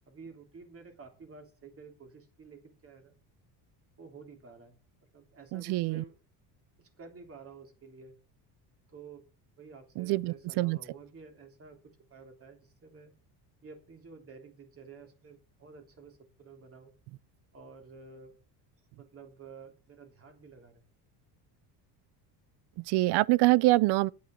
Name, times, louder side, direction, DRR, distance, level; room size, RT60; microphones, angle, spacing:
voice 1, 0.1-3.1 4.0-4.8 5.1-6.2 6.8-8.1 8.9-9.2 9.6-11.8 12.1-13.1 13.6-16.9 17.5-18.3 19.0-20.8, right 5 dB, 30° right, 3.4 m, -51 dB
voice 2, 5.5-6.0 10.0-10.8 22.9-24.1, right 20 dB, 65° right, 0.6 m, -25 dB
9.3 x 8.4 x 6.4 m
cardioid pair, 130°, 44 cm